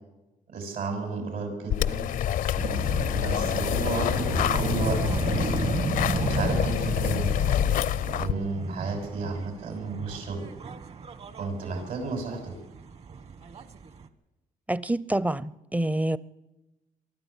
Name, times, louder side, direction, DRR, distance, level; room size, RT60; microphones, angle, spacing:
voice 1, 0.5-2.1 3.1-4.3 4.5-5.0 6.1-7.3 8.1-10.4 11.4-12.5, right 3 dB, 70° right, 7.0 m, -32 dB
sound 1, 1.7-8.3, left 11 dB, 70° left, 0.6 m, -27 dB
sound 2, 2.6-14.1, right 5 dB, 45° right, 1.5 m, -33 dB
voice 2, 14.7-16.2, right 1 dB, 10° right, 0.6 m, -27 dB
23.5 x 13.0 x 8.4 m
cardioid pair, 110°, 15 cm